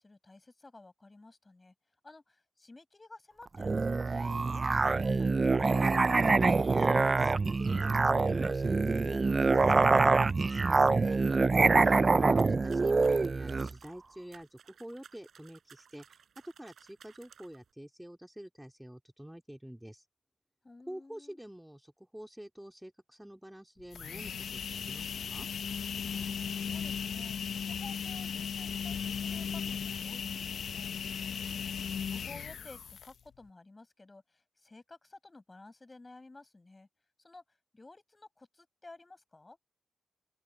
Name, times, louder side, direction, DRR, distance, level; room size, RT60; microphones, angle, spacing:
voice 1, 0.0-1.7 2.0-6.2 20.6-21.4 25.9-36.9 37.2-37.4 37.7-39.6, left 2 dB, 30° left, 6.3 m, -54 dB
Musical instrument, 3.6-13.7, right 3 dB, 40° right, 0.4 m, -25 dB
voice 2, 6.6-11.2 11.8-16.2 16.4-20.1 20.9-25.5, equal, 5° right, 2.3 m, -48 dB
sound 1, 12.4-17.7, right 7 dB, 80° right, 4.5 m, -58 dB
sound 2, 23.8-33.3, left 7 dB, 80° left, 0.7 m, -37 dB
open air
cardioid pair, 65°, 0 cm